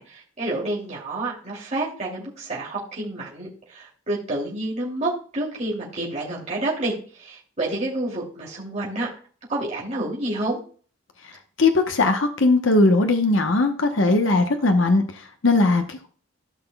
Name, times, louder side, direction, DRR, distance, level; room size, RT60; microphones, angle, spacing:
voice 1, 0.0-9.1 9.5-10.6, right 2 dB, 35° right, -5 dB, 2.6 m, -29 dB
voice 2, 11.6-16.1, left 2 dB, 65° left, 5 dB, 0.9 m, -19 dB
15.0 x 6.0 x 2.3 m, 0.42 s
head